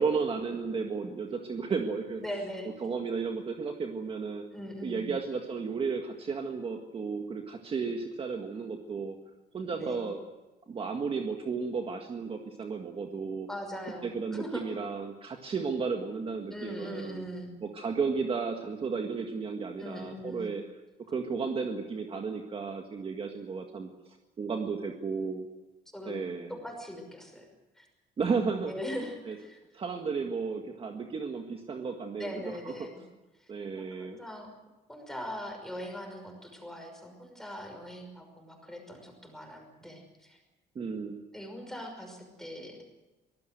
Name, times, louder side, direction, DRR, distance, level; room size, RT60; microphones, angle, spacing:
voice 1, 0.0-2.2 2.8-4.4 4.8-9.2 9.5-10.2 10.7-13.5 14.0-17.2 17.6-20.6 21.1-25.5 26.1-26.5 28.2-28.7 29.3-29.4 29.7-32.7 33.5-34.2 40.8-41.2, right 5 dB, 30° right, 4 dB, 1.8 m, -33 dB
voice 2, 2.2-2.7 4.5-5.1 9.7-10.0 13.5-14.7 16.5-17.5 19.8-20.5 25.9-26.2 26.5-27.5 27.7-27.9 28.7-29.6 32.2-33.1 33.4-33.5 33.8-34.5 34.9-40.4 41.3-42.8, equal, ahead, 3 dB, 5.7 m, -41 dB
24.5 x 19.5 x 8.0 m, 1.1 s
cardioid pair, 175°, 18 cm